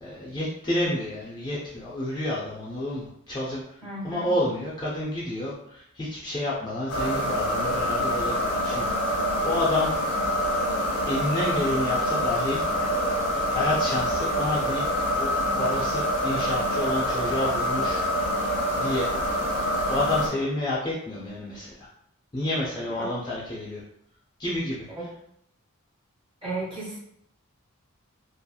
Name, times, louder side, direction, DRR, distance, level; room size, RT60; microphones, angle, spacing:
voice 1, 0.0-3.6 4.0-8.9 9.4-9.9 11.1-12.6 13.4-14.9 15.2-18.0 18.8-19.1 19.9-21.9 22.3-23.8 24.4-24.8, left 1 dB, 20° left, -6 dB, 0.4 m, -29 dB
voice 2, 3.8-4.3 23.0-23.1 26.4-27.0, right 2 dB, 25° right, -5 dB, 1.0 m, -33 dB
sound 1, 6.9-20.3, equal, 90° left, 0.8 m, -26 dB
2.7 x 2.4 x 2.3 m, 0.73 s
head